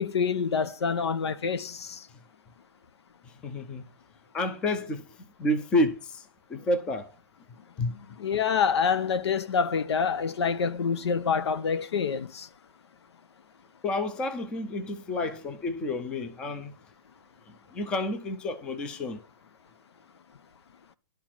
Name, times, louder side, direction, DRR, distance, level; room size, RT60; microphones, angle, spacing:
voice 1, 0.0-2.0 7.9-12.5, left 6 dB, 85° left, 1.0 m, -27 dB
voice 2, 3.4-3.8 4.3-5.0 5.4-6.2 6.5-7.1 7.8-7.9 13.8-16.7 17.7-19.2, left 1 dB, 5° left, 0.5 m, -29 dB
11.0 x 4.6 x 7.4 m
hypercardioid pair, 180°, 14 cm